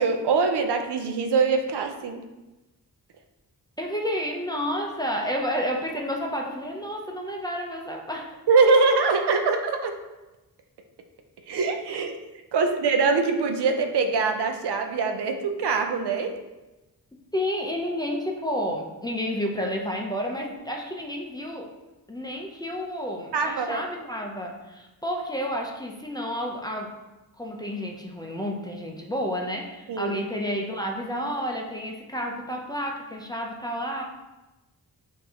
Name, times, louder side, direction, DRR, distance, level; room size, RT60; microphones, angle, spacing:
voice 1, 0.0-2.2 8.5-9.9 11.5-12.2 12.5-16.3 23.3-23.9 29.9-30.1, right 4 dB, 80° right, 5 dB, 0.6 m, -23 dB
voice 2, 3.8-8.3 17.3-21.7 22.1-26.9 27.4-34.0, equal, 10° left, 0 dB, 0.4 m, -30 dB
6.6 x 2.7 x 2.8 m, 1.1 s
wide cardioid pair, 140°, 39 cm